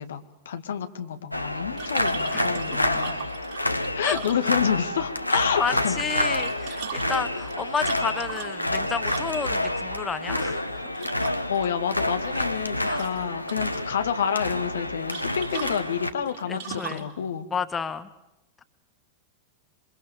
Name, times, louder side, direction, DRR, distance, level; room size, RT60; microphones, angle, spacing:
voice 1, 0.0-3.2 3.6-6.0 11.5-17.5, left 8 dB, 65° left, 8 dB, 1.9 m, -29 dB
sound 1, 1.3-16.1, left 1 dB, 90° left, 1.1 m, -28 dB
sound 2, 1.8-4.9 6.2-9.6 10.9-11.7 12.0-12.7 13.0-13.8 15.1-17.1, right 8 dB, 50° right, 5.5 m, -39 dB
voice 2, 2.8-3.2 4.0-4.2 5.3-11.0 12.8-13.0 16.5-17.1 17.5-18.1, left 6 dB, 15° left, 11 dB, 1.2 m, -31 dB
27.5 x 24.5 x 7.0 m, 0.87 s
figure-of-eight pair, 90°, 0 cm